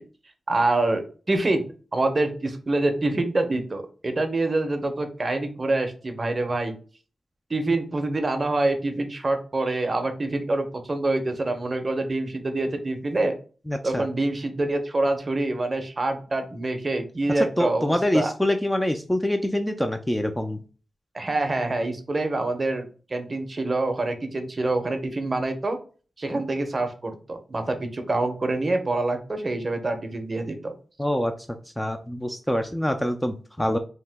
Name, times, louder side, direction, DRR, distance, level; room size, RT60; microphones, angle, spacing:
voice 1, 0.5-1.6 1.9-6.8 7.5-13.3 13.8-18.3 21.1-25.8 26.2-30.7, right 2 dB, 35° right, 6 dB, 0.6 m, -26 dB
voice 2, 13.7-14.1 17.6-20.6 31.0-31.3 31.8-33.8, left 1 dB, 10° left, 6 dB, 0.3 m, -25 dB
2.8 x 2.1 x 3.3 m, 0.38 s
cardioid pair, 75°, 0 cm